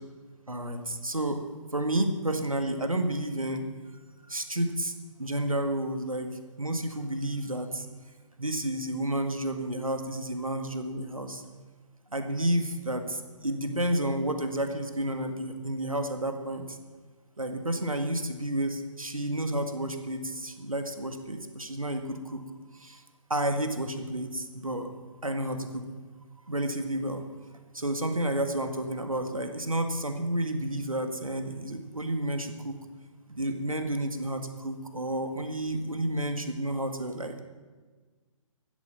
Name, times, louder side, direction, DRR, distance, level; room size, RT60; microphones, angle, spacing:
voice 1, 0.5-1.4 1.7-3.6 4.3-4.9 5.2-6.3 6.6-7.9 8.4-11.4 12.1-16.8 17.4-22.4 22.7-23.0 23.3-24.9 25.2-25.8 26.5-27.2 27.7-32.7 33.3-37.4, right 1 dB, 85° right, 6 dB, 2.0 m, -31 dB
15.5 x 11.5 x 5.8 m, 1.4 s
figure-of-eight pair, 135°, 17 cm